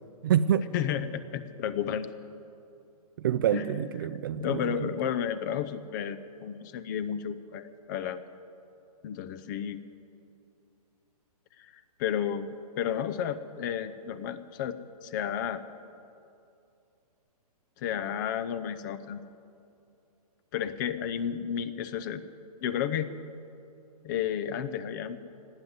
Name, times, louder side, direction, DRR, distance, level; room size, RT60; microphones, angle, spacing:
voice 1, 0.2-0.7 3.2-4.9, right 9 dB, 35° right, 14 dB, 0.4 m, -27 dB
voice 2, 0.7-2.1 3.5-3.6 4.4-8.2 9.0-9.8 11.6-11.7 12.0-15.6 17.8-19.2 20.5-22.2 22.6-23.1 24.0-25.2, left 9 dB, 30° left, 13 dB, 0.7 m, -32 dB
19.0 x 9.4 x 8.0 m, 2.6 s
hypercardioid pair, 155°, 20 cm